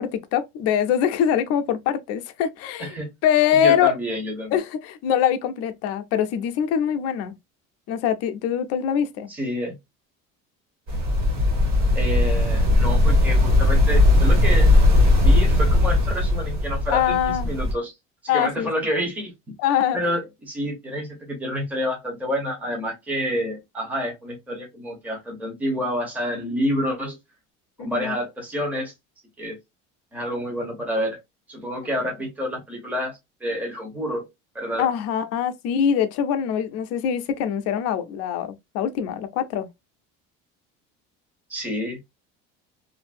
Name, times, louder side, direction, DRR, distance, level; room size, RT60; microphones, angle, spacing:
voice 1, 0.0-2.9 3.2-3.9 4.5-7.3 7.9-9.3 16.9-17.5 18.3-18.7 19.6-20.0 27.8-28.2 34.8-39.7, left 9 dB, 55° left, 0.5 m, -23 dB
voice 2, 3.6-4.5 9.3-9.8 11.9-14.7 15.2-17.9 18.3-19.3 19.9-27.2 27.8-28.9 29.4-29.6 30.1-31.2 31.5-34.3 34.5-34.9 41.5-42.0, equal, 5° right, 0.8 m, -28 dB
sound 1, 10.9-17.7, left 2 dB, 70° right, 1.5 m, -18 dB
2.6 x 2.5 x 2.5 m
cardioid pair, 170°, 30 cm